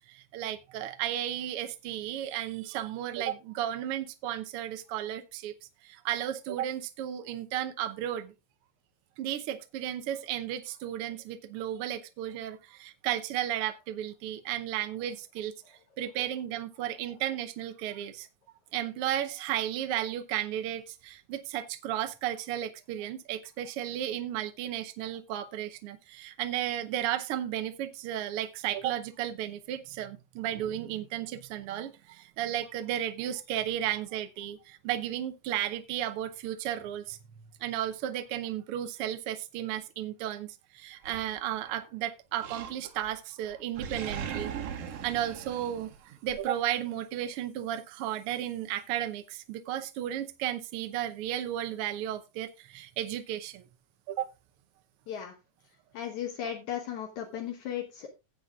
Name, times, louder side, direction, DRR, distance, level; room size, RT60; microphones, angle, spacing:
voice 1, 0.1-5.5 5.8-8.3 9.2-15.5 16.0-18.3 18.7-37.2 37.6-44.5 45.0-53.7 54.1-54.3, right 11 dB, 85° right, 1.2 m, -34 dB
Animal, 41.0-41.9 42.4-43.2 43.4-46.4, right 7 dB, 60° right, 1.8 m, -39 dB
voice 2, 55.9-58.1, left 9 dB, 70° left, 2.4 m, -36 dB
16.5 x 8.0 x 2.4 m
omnidirectional pair, 3.7 m